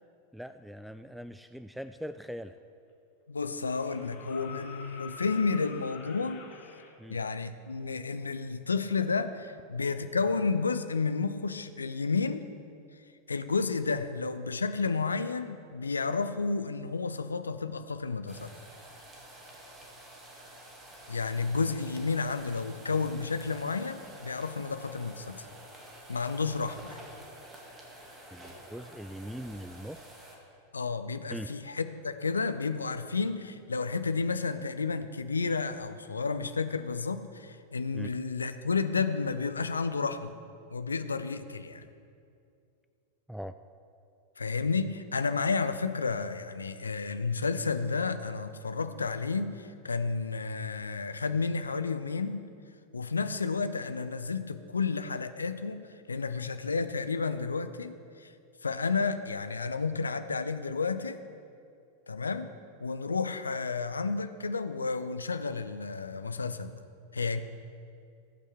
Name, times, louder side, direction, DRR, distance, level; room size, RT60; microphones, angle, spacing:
voice 1, 0.3-2.6 7.0-7.2 28.3-30.1 31.3-31.5 37.9-38.2 43.3-43.5, equal, ahead, 11 dB, 0.3 m, -41 dB
sound 1, 2.6-2.7 3.7-6.9 8.7-8.8, left 5 dB, 45° left, 1.9 m, -46 dB
voice 2, 3.3-6.5 7.1-12.5 13.3-18.5 21.1-25.5 26.1-27.0 30.7-40.3 40.7-41.8 44.4-52.4 52.9-55.8 56.1-58.3 58.6-61.2 62.1-62.5 62.8-66.8 67.1-67.4, left 4 dB, 75° left, 11 dB, 0.6 m, -31 dB
sound 2, 18.3-30.4, right 1 dB, 20° right, 2.1 m, -49 dB
20.0 x 8.3 x 3.5 m, 2.5 s
figure-of-eight pair, 90°, 0 cm